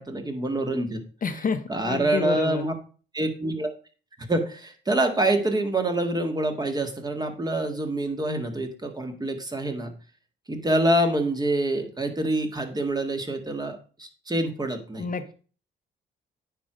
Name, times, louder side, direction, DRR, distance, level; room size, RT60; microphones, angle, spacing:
voice 1, 0.0-1.0 1.7-2.7 3.1-3.7 4.3-9.9 10.5-15.1, right 1 dB, 20° right, 5 dB, 1.8 m, -26 dB
voice 2, 1.2-2.6 15.0-15.3, left 5 dB, 45° left, 8 dB, 1.0 m, -29 dB
9.3 x 4.7 x 5.0 m, 0.37 s
cardioid pair, 90°, 20 cm